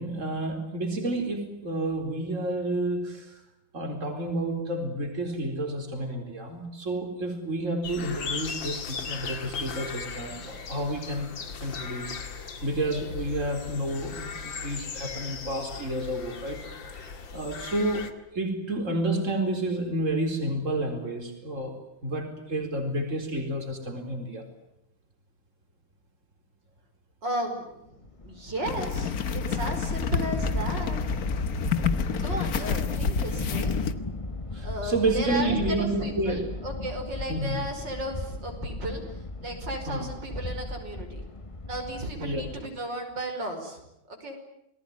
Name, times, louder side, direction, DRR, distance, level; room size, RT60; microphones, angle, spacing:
voice 1, 0.0-3.4 3.7-16.6 16.9-21.7 22.0-24.4 34.5-36.4 37.3-37.6 39.9-40.1 42.2-42.4, right 1 dB, 40° right, 4 dB, 4.7 m, -30 dB
sound 1, 7.8-18.1, left 5 dB, 85° left, 2.7 m, -38 dB
voice 2, 27.2-31.0 32.2-33.7 34.6-39.0 39.4-41.2 41.7-43.8 44.1-44.4, right 1 dB, 70° right, 4 dB, 6.1 m, -34 dB
sound 2, 28.1-42.6, left 2 dB, 20° left, 1.3 m, -35 dB
sound 3, 28.6-33.9, left 6 dB, 55° left, 1.6 m, -29 dB
28.5 x 20.0 x 9.6 m, 0.82 s
omnidirectional pair, 2.0 m